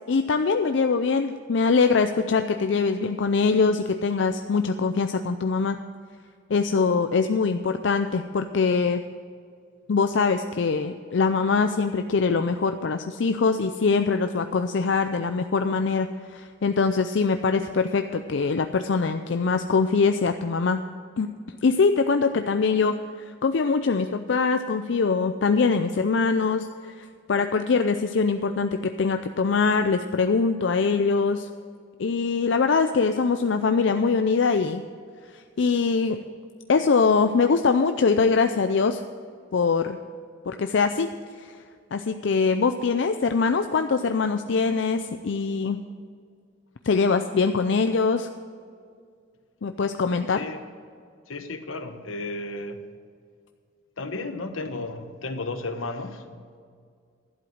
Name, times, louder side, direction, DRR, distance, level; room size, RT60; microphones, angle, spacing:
voice 1, 0.1-5.8 6.5-9.0 9.9-20.8 21.2-21.3 21.6-23.0 23.4-31.5 32.0-34.8 35.3-36.2 36.7-39.0 39.5-40.0 40.5-41.1 41.4-41.5 41.9-45.9 46.8-48.3 49.6-50.4, left 4 dB, 65° left, 8 dB, 0.4 m, -23 dB
voice 2, 50.3-50.6 51.3-52.9 54.0-56.3, left 2 dB, 85° left, 8 dB, 1.1 m, -33 dB
12.0 x 7.8 x 7.8 m, 2.1 s
head